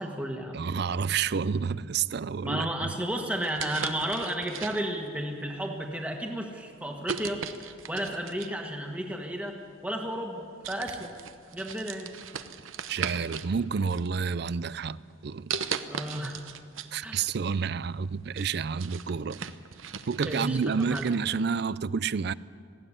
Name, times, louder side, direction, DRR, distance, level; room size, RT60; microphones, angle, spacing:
voice 1, 0.0-0.6 2.4-11.1 11.5-12.1 15.9-16.4 17.0-17.3 20.2-21.2, right 1 dB, 5° right, 1.4 m, -33 dB
voice 2, 0.5-2.9 12.9-15.5 16.9-19.4 20.1-22.3, right 6 dB, 55° right, 0.4 m, -29 dB
sound 1, 3.4-5.1 5.8-6.0 7.0-8.6 9.7-9.8 10.2-10.4 10.6-13.5 13.9-14.6 15.5-16.9 17.3-17.4 17.9-21.2, right 7 dB, 85° right, 0.9 m, -38 dB
19.5 x 15.5 x 9.9 m
head